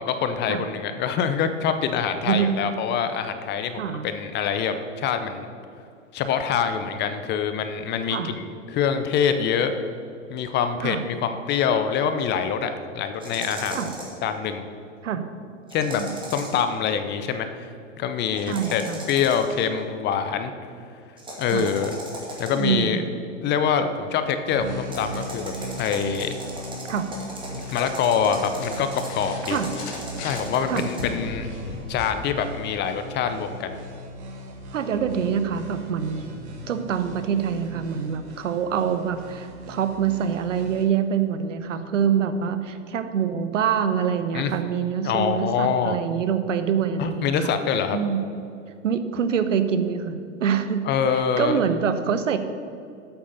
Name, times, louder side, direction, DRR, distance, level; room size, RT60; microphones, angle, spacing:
voice 1, 0.0-5.5 6.1-9.7 10.3-13.9 14.2-14.6 15.7-16.0 16.3-17.7 18.0-18.8 19.1-20.5 21.4-22.0 22.4-23.0 23.4-25.5 25.8-26.3 27.5-29.6 30.2-31.5 31.9-33.8 44.3-44.5 45.0-46.0 47.0-48.0 50.8-51.6, left 7 dB, 30° left, 9 dB, 0.7 m, -25 dB
sound 1, 13.2-14.2 15.7-16.7 18.3-19.6 21.2-22.7 24.8-31.0, right 1 dB, 15° right, 2.3 m, -37 dB
voice 2, 18.5-19.0 21.5-21.7 22.5-23.0 26.9-27.1 29.5-29.7 30.7-30.9 34.7-36.2 36.7-47.5 47.9-48.2 48.8-50.8 51.1-52.4, right 7 dB, 75° right, 10 dB, 0.9 m, -25 dB
sound 2, 24.5-40.8, right 1 dB, 60° right, 1.8 m, -39 dB
sound 3, 27.2-32.2, left 3 dB, 60° left, 1.8 m, -38 dB
8.2 x 8.0 x 5.5 m, 2.5 s
hypercardioid pair, 100°, 38 cm